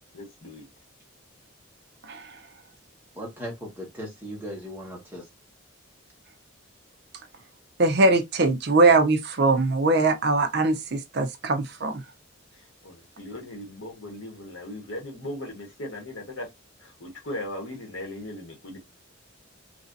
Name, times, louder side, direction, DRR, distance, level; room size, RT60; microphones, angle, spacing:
voice 1, 0.1-0.6 12.8-16.5 16.8-18.8, left 1 dB, 70° left, 1.3 m, -38 dB
voice 2, 2.0-2.5 7.8-12.0, right 3 dB, 50° right, 0.5 m, -21 dB
voice 3, 3.1-5.3, equal, 10° right, 1.2 m, -37 dB
3.2 x 2.6 x 2.5 m
head